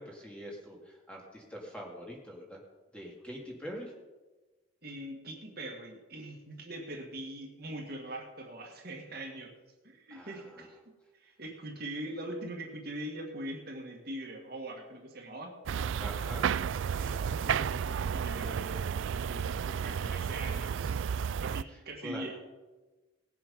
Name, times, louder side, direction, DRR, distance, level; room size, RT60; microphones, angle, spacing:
voice 1, 0.0-2.6 2.9-3.9 10.1-10.7 16.0-17.5 21.6-22.3, equal, 5° left, -2 dB, 2.3 m, -45 dB
voice 2, 4.8-9.5 9.8-10.8 11.1-15.6 17.0-21.0 21.4-22.4, right 1 dB, 50° right, 1 dB, 2.1 m, -42 dB
sound 1, 15.7-21.6, right 7 dB, 75° right, 0.3 m, -32 dB
19.0 x 7.7 x 5.5 m, 1.2 s
head